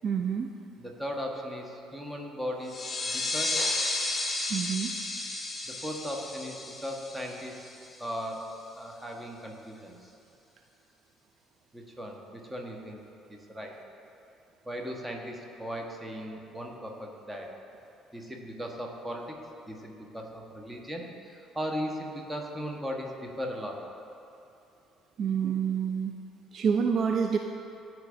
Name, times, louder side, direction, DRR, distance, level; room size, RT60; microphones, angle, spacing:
voice 1, 0.0-0.5 4.5-4.9 25.2-26.1 26.5-27.4, right 7 dB, 50° right, 5 dB, 0.3 m, -27 dB
voice 2, 0.8-3.6 5.6-7.7 8.0-8.4 8.8-10.1 11.7-13.0 13.3-13.7 14.6-17.5 18.1-19.3 19.7-23.8, equal, 10° right, 0 dB, 1.2 m, -37 dB
sound 1, 2.7-8.0, left 2 dB, 25° left, 0.9 m, -33 dB
12.5 x 4.6 x 2.6 m, 2.7 s
hypercardioid pair, 55°, 0 cm